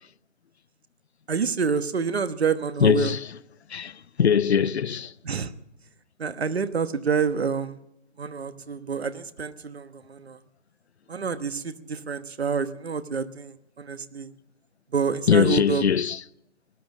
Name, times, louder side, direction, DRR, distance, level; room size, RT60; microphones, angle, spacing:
voice 1, 1.3-3.1 5.2-5.5 6.2-7.8 8.2-10.4 11.1-14.3 14.9-15.8, right 6 dB, 55° right, 1.2 m, -28 dB
voice 2, 2.8-3.3 3.7-3.9 4.2-5.1 15.3-16.2, left 7 dB, 60° left, 0.6 m, -21 dB
19.0 x 11.0 x 6.2 m
figure-of-eight pair, 160°, 37 cm